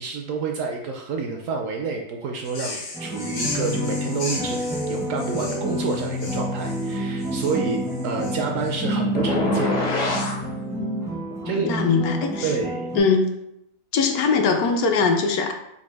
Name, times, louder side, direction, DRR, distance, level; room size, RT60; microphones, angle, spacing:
voice 1, 0.0-4.6 4.9-9.9 11.4-11.7 12.4-12.9, right 5 dB, 70° right, 2 dB, 0.8 m, -29 dB
sound 1, 2.4-8.7, left 2 dB, 90° left, 1.8 m, -36 dB
sound 2, 2.9-13.0, equal, 5° right, 0.4 m, -28 dB
sound 3, 9.1-10.4, left 2 dB, 45° left, 0.6 m, -25 dB
voice 2, 11.4-12.5 12.9-13.2 13.9-15.5, left 5 dB, 70° left, 4 dB, 1.0 m, -21 dB
4.1 x 2.5 x 4.6 m, 0.81 s
omnidirectional pair, 1.8 m